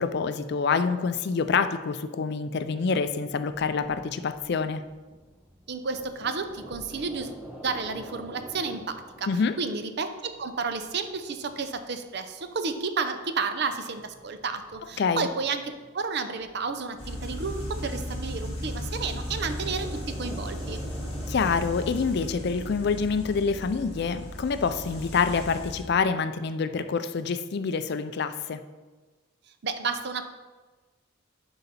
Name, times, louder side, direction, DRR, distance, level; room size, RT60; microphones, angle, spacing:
voice 1, 0.0-4.8 9.3-9.5 15.0-15.3 21.3-28.6, left 5 dB, 50° left, 11 dB, 0.4 m, -26 dB
sound 1, 2.7-9.9 10.2-12.6 13.2-15.9 16.4-22.5, equal, 5° right, 0.6 m, -48 dB
voice 2, 5.7-7.3 7.6-20.8 29.6-30.2, right 4 dB, 55° right, 9 dB, 0.6 m, -31 dB
sound 2, 17.0-25.8, equal, 30° left, 1.7 m, -36 dB
11.0 x 4.0 x 4.1 m, 1.3 s
head